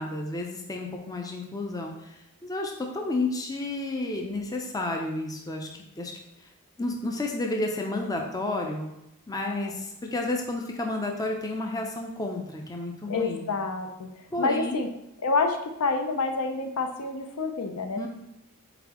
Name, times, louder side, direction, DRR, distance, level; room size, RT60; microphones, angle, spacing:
voice 1, 0.0-2.1 2.4-5.7 6.0-6.1 6.8-8.9 9.3-13.5 14.3-14.9 18.0-18.1, left 2 dB, 15° left, 1 dB, 0.4 m, -31 dB
voice 2, 9.5-9.8 13.1-14.9 15.2-18.1, left 3 dB, 75° left, 5 dB, 0.5 m, -28 dB
4.2 x 4.0 x 2.9 m, 0.84 s
head